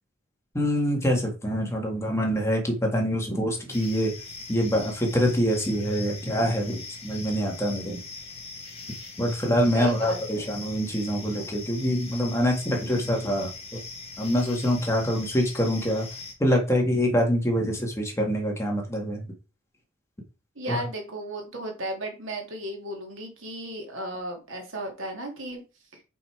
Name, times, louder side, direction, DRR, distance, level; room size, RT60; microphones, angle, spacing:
voice 1, 0.5-4.1 4.5-8.0 9.2-13.8 14.2-16.1 16.4-19.2 20.7-20.8, equal, 15° left, 1.9 m, -25 dB
sound 1, 3.7-16.3, left 4 dB, 30° left, 1.8 m, -41 dB
voice 2, 9.7-10.6 20.6-25.6, right 1 dB, 75° right, 2.3 m, -35 dB
5.6 x 5.3 x 4.6 m
head